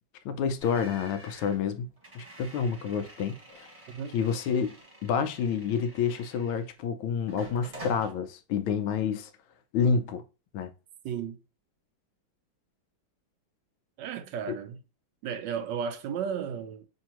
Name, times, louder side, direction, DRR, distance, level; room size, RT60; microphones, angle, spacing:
voice 1, 0.2-1.9 2.1-3.7 4.1-4.8 5.0-9.3 9.7-10.2 10.5-10.7 14.5-14.6, left 6 dB, 85° left, 1.4 m, -29 dB
sound 1, 0.6-6.8 7.3-8.1, right 1 dB, 20° right, 1.1 m, -48 dB
voice 2, 11.0-11.4 14.0-14.8 15.2-16.9, right 7 dB, 75° right, 1.1 m, -34 dB
6.3 x 2.7 x 2.9 m
omnidirectional pair, 2.2 m